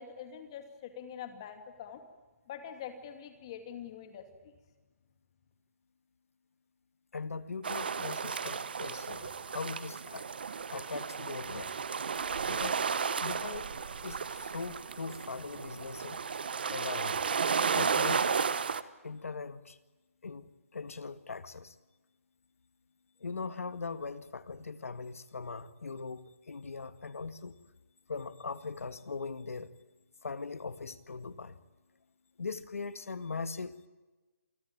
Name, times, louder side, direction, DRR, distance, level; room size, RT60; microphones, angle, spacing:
voice 1, 0.0-2.0 2.5-4.3, left 8 dB, 20° left, 2.3 m, -44 dB
voice 2, 7.1-10.3 10.7-11.8 12.5-12.9 13.2-13.7 14.0-16.2 16.7-17.2 17.7-18.3 19.0-19.8 20.2-21.7 23.2-27.6 28.1-29.7 30.2-31.6 32.4-33.9, left 4 dB, 70° left, 1.8 m, -40 dB
sound 1, 7.6-18.8, right 6 dB, 40° right, 1.1 m, -33 dB
Wind instrument woodwind instrument, 12.1-16.1, right 3 dB, 85° right, 6.9 m, -55 dB
27.5 x 20.5 x 8.7 m
hypercardioid pair, 175°, 8 cm